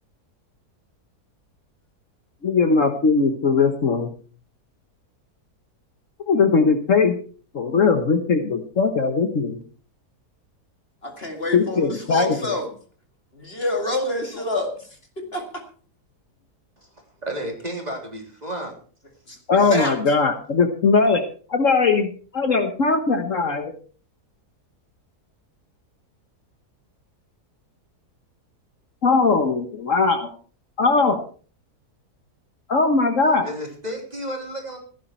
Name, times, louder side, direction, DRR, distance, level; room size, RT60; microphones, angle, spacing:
voice 1, 2.4-4.1 6.3-7.2 7.5-9.6 11.5-12.5 19.5-21.2 21.5-23.7 29.0-30.3 30.8-31.2 32.7-33.5, left 4 dB, 55° left, 1.5 m, -19 dB
voice 2, 11.0-12.7 13.3-14.7 15.2-15.4 19.3-20.0, left 1 dB, 40° left, 2.4 m, -27 dB
voice 3, 17.2-18.7 33.4-34.8, equal, 25° right, 3.5 m, -32 dB
16.0 x 10.5 x 4.4 m
omnidirectional pair, 1.7 m